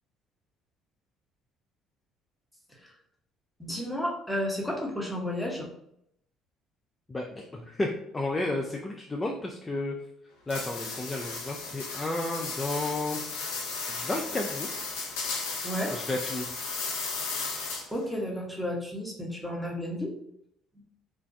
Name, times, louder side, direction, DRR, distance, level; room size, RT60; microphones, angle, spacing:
voice 1, 3.6-5.7 15.6-15.9 17.9-20.1, equal, ahead, -2 dB, 0.8 m, -32 dB
voice 2, 7.1-10.0 10.5-13.2 13.9-14.8 15.9-16.7, left 2 dB, 20° left, 0 dB, 0.3 m, -32 dB
sound 1, 10.5-18.0, left 4 dB, 80° left, 0.5 m, -35 dB
2.4 x 2.1 x 2.5 m, 0.74 s
hypercardioid pair, 60°, 0 cm